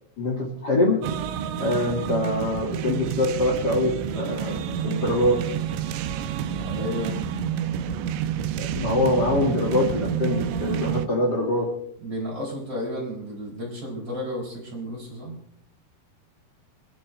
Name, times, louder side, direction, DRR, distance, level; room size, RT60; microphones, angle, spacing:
voice 1, 0.2-1.0 1.6-5.4 8.6-11.7, left 1 dB, 35° left, 0 dB, 1.8 m, -24 dB
sound 1, 1.0-11.1, right 8 dB, 80° right, 2.0 m, -29 dB
voice 2, 6.5-7.2 12.0-15.4, equal, 25° right, -2 dB, 5.9 m, -32 dB
28.5 x 11.0 x 3.3 m, 0.72 s
omnidirectional pair, 4.7 m